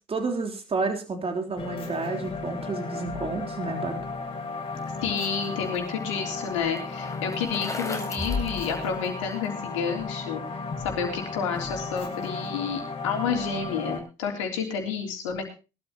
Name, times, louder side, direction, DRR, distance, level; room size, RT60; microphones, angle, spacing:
voice 1, 0.1-4.0, right 3 dB, 40° right, 5 dB, 3.6 m, -30 dB
sound 1, 1.6-14.0, left 4 dB, 40° left, 5.6 m, -34 dB
voice 2, 5.0-10.4 10.8-15.5, left 6 dB, 85° left, 3 dB, 3.4 m, -30 dB
Bicycle, 5.0-9.5, left 2 dB, 20° left, 5.1 m, -40 dB
21.0 x 12.5 x 2.9 m, 0.31 s
hypercardioid pair, 55°, 15 cm